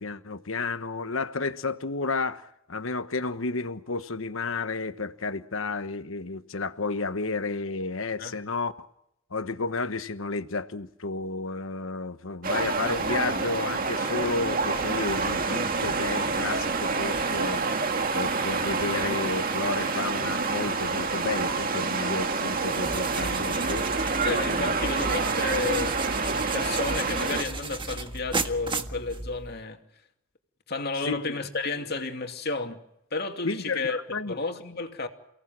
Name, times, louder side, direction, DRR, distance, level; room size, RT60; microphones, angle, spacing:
voice 1, 0.0-8.7 9.3-17.6 18.1-23.9 24.5-24.8 31.0-31.4 33.4-34.4, left 3 dB, 75° left, 1.2 m, -32 dB
sound 1, 12.4-27.4, right 4 dB, 45° right, 2.1 m, -27 dB
sound 2, 22.6-29.6, right 3 dB, 25° right, 1.6 m, -35 dB
voice 2, 24.2-26.0 26.3-29.8 30.7-32.8 33.1-34.0 34.3-35.1, left 3 dB, 50° left, 2.7 m, -32 dB
29.5 x 18.0 x 7.6 m
head